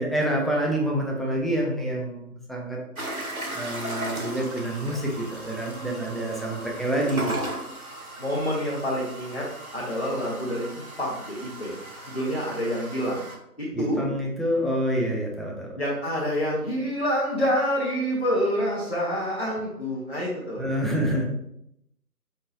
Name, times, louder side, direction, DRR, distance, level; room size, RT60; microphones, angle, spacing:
voice 1, 0.0-2.8 3.5-7.3 13.7-15.8 20.6-21.2, right 1 dB, ahead, -2 dB, 0.5 m, -27 dB
sound 1, 3.0-13.4, right 1 dB, 65° right, 1.0 m, -37 dB
voice 2, 8.2-9.4 9.7-10.7 11.0-11.7 12.1-13.2 13.6-14.0 15.8-20.7, equal, 40° left, -6 dB, 0.8 m, -27 dB
5.4 x 2.8 x 2.6 m, 0.78 s
figure-of-eight pair, 175°, 47 cm